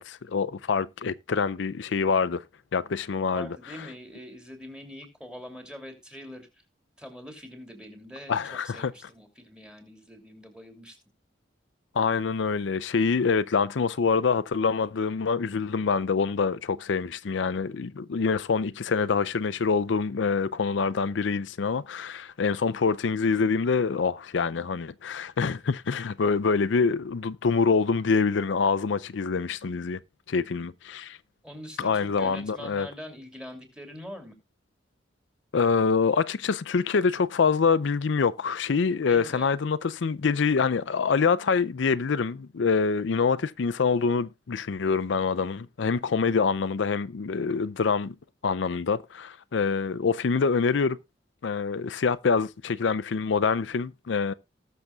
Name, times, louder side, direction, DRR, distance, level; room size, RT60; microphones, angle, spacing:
voice 1, 0.0-2.4 2.7-3.9 8.3-8.9 11.9-30.0 30.3-31.2 31.8-32.9 35.5-48.1 48.4-51.0 51.4-54.3, left 5 dB, 75° left, 0.5 m, -25 dB
voice 2, 3.3-6.5 7.0-11.0 31.4-34.3 39.0-39.5, equal, 5° right, 2.8 m, -43 dB
19.0 x 6.8 x 2.4 m
head